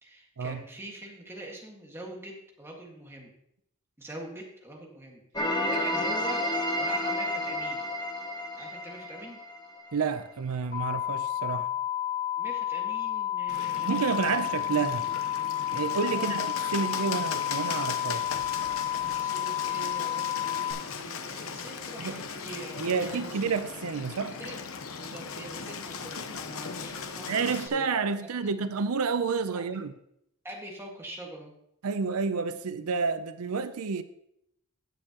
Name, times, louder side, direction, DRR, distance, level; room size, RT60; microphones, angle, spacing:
voice 1, 0.0-3.3 4.0-6.5 6.7-7.9 8.6-9.4 12.4-14.4 16.1-16.4 19.0-23.6 24.1-24.6 25.0-27.9 28.4-28.5 29.5-29.7 30.4-31.5, right 1 dB, 10° right, 1.8 m, -44 dB
sound 1, 5.4-10.2, equal, 20° left, 1.0 m, -31 dB
voice 2, 9.9-11.7 13.8-15.1 15.7-18.2 22.0-22.2 22.8-24.3 27.3-29.9 31.8-34.0, right 5 dB, 90° right, 0.6 m, -29 dB
sound 2, 10.7-20.7, left 11 dB, 45° left, 3.4 m, -31 dB
Bird, 13.5-27.7, left 5 dB, 70° left, 0.9 m, -38 dB
17.0 x 6.7 x 3.0 m
head